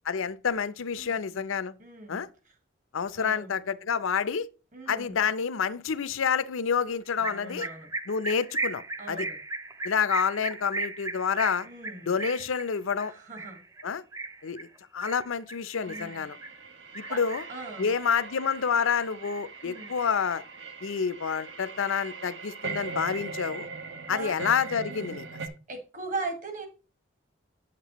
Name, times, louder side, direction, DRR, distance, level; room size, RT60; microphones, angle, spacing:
voice 1, 0.1-1.7 2.1-2.3 2.9-4.5 4.9-7.7 8.1-8.8 9.1-9.3 9.8-11.7 12.1-13.1 13.8-14.0 14.4-14.7 14.9-16.4 16.9-17.4 17.8-20.4 20.8-23.7 24.1-25.3, left 6 dB, 85° left, 0.5 m, -28 dB
voice 2, 1.0-1.4 1.8-2.2 3.1-3.5 4.7-5.2 7.2-7.9 9.0-9.4 11.7-12.1 13.1-13.6 15.9-16.2 17.1-17.2 17.5-17.9 19.6-19.9 24.1-24.4 24.9-25.2 25.7-26.7, right 3 dB, 40° right, 1.7 m, -39 dB
sound 1, 7.2-16.6 16.9-17.7 18.0-19.0 19.2-20.6, right 2 dB, 15° right, 0.4 m, -37 dB
sound 2, 15.7-25.5, right 4 dB, 65° right, 1.0 m, -41 dB
8.8 x 7.4 x 3.0 m
head